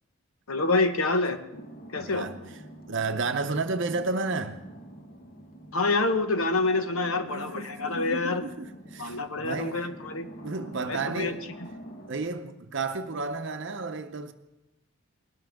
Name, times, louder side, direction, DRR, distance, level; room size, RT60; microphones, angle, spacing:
voice 1, 0.5-1.4 1.9-2.3 5.7-8.4 9.0-10.3 10.9-11.3, left 3 dB, 75° left, 1.0 m, -27 dB
sound 1, 1.5-12.3, right 1 dB, 40° left, 1.1 m, -46 dB
voice 2, 2.0-2.4 2.9-4.6 7.2-9.8 10.4-11.4 12.1-14.3, right 3 dB, 55° right, 0.7 m, -32 dB
20.0 x 12.5 x 3.6 m
head